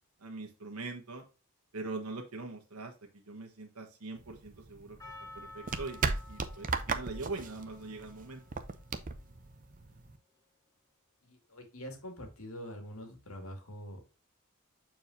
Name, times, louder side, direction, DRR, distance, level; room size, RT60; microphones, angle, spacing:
voice 1, 0.2-1.2 1.7-5.0 5.3-8.4, right 3 dB, 80° right, 3 dB, 1.3 m, -42 dB
sound 1, 4.2-10.2, right 4 dB, 35° right, 0.6 m, -37 dB
Percussion, 5.0-10.0, left 2 dB, 15° left, 0.9 m, -54 dB
voice 2, 9.8-10.1 11.2-14.1, equal, 70° left, 4 dB, 2.1 m, -45 dB
7.7 x 4.6 x 2.7 m, 0.32 s
head